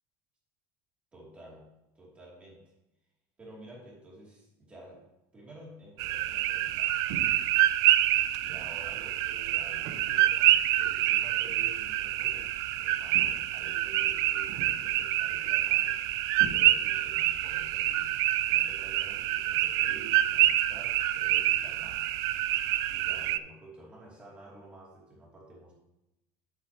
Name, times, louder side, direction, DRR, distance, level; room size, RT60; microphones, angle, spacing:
voice 1, 1.1-2.7 3.4-7.0 7.2-7.5 8.4-16.0 16.4-18.2 18.5-22.1 22.9-25.7, right 1 dB, 15° right, -4 dB, 2.8 m, -51 dB
sound 1, 6.0-23.4, right 14 dB, 50° right, 0.3 m, -27 dB
sound 2, 7.1-7.6 8.5-8.8 9.8-10.3 11.4-11.7 13.1-13.6 14.5-15.0 16.4-17.1, right 5 dB, 90° right, 1.1 m, -43 dB
9.7 x 8.3 x 3.0 m, 0.91 s
cardioid pair, 170°, 8 cm